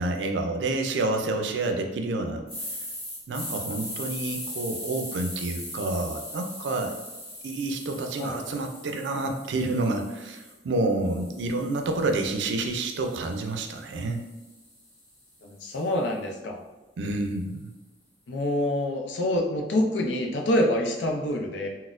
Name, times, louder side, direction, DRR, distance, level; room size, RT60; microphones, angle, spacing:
voice 1, 0.0-2.4 3.3-6.9 7.4-14.2 17.0-17.7, right 2 dB, 80° right, 5 dB, 0.4 m, -29 dB
sound 1, 2.5-10.5 11.0-15.2, left 1 dB, 20° left, 1.2 m, -40 dB
voice 2, 15.4-16.6 18.3-21.7, left 1 dB, 80° left, 2 dB, 0.5 m, -26 dB
4.0 x 2.1 x 2.5 m, 1.2 s
head